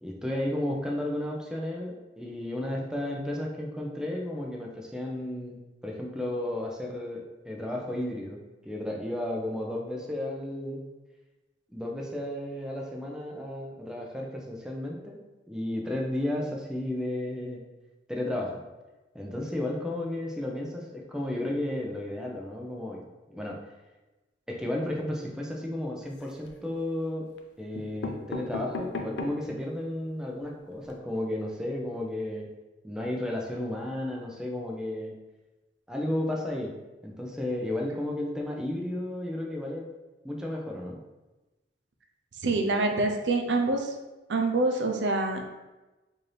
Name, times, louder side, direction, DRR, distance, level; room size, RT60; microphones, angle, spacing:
voice 1, 0.0-10.8 11.7-15.2 15.5-17.6 18.1-18.6 19.1-23.6 24.5-32.5 32.8-35.2 35.9-36.7 37.0-39.9 40.2-41.0, left 1 dB, 5° right, -1 dB, 0.5 m, -33 dB
sound 1, 26.0-26.6 27.4-27.5 27.7-29.5 30.0-30.1 30.3-30.4 30.7-30.9, left 3 dB, 80° left, 0.4 m, -37 dB
voice 2, 42.4-43.9 44.3-45.4, right 2 dB, 90° right, 3 dB, 0.5 m, -26 dB
4.1 x 2.6 x 3.3 m, 1.1 s
head